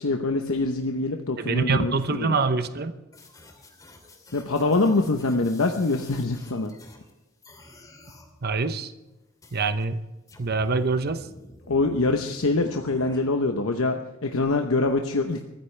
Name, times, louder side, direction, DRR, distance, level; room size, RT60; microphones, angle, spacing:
voice 1, 0.0-2.4 4.3-6.7 11.7-15.5, left 3 dB, 75° left, 4 dB, 1.0 m, -24 dB
voice 2, 1.4-2.9 8.4-8.9 9.5-10.0 10.4-11.3, right 4 dB, 50° right, 10 dB, 0.8 m, -25 dB
sound 1, 3.1-7.1 7.4-8.3 9.4-9.8 10.3-13.2, left 1 dB, 15° left, 2.7 m, -50 dB
23.5 x 14.5 x 3.4 m, 1.0 s
head